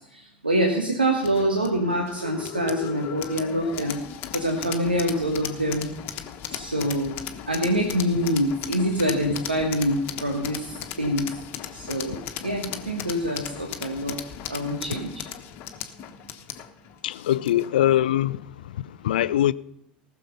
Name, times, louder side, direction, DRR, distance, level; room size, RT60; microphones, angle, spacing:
voice 1, 0.1-4.0 4.3-5.9 6.5-7.2 7.5-11.4 11.7-14.2 14.5-15.2, equal, 85° right, 1.4 m, -25 dB
sound 1, 1.2-17.8, left 10 dB, 45° left, 1.2 m, -37 dB
voice 2, 17.0-19.5, left 12 dB, 70° left, 0.4 m, -23 dB
18.5 x 6.6 x 5.5 m
figure-of-eight pair, 75°, 5 cm